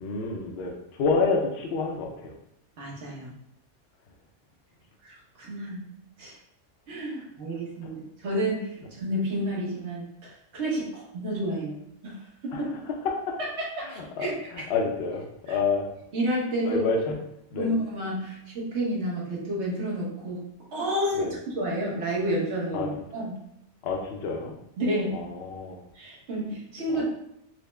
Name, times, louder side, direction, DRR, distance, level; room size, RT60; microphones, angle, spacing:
voice 1, 0.0-2.3 12.5-12.7 13.0-13.4 13.8-15.9 16.7-17.2 17.5-17.7 21.2-21.3 22.7-22.9 23.8-24.5 25.1-25.8 27.0-27.1, left 4 dB, 65° left, 2 dB, 0.8 m, -28 dB
voice 2, 2.8-3.3 5.0-5.8 6.2-6.4 6.9-12.7 13.6-14.4 15.5-15.6 16.1-16.8 17.6-20.4 20.7-23.4 24.8-25.3 25.9-27.0, right 1 dB, 65° right, -3 dB, 1.3 m, -30 dB
4.1 x 2.0 x 3.3 m, 0.77 s
omnidirectional pair, 1.3 m